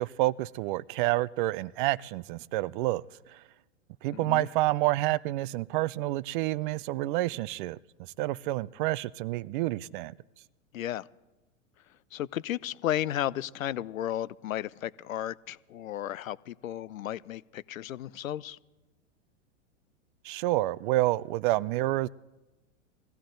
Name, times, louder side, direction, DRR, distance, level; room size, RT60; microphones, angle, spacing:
voice 1, 0.0-3.0 3.3-3.4 4.0-10.1 20.2-22.1, right 18 dB, 40° right, 0.4 m, -29 dB
voice 2, 4.1-4.5 10.7-11.1 12.1-18.6, left 12 dB, 85° left, 0.6 m, -34 dB
21.0 x 15.5 x 3.9 m
hypercardioid pair, 115°, 39 cm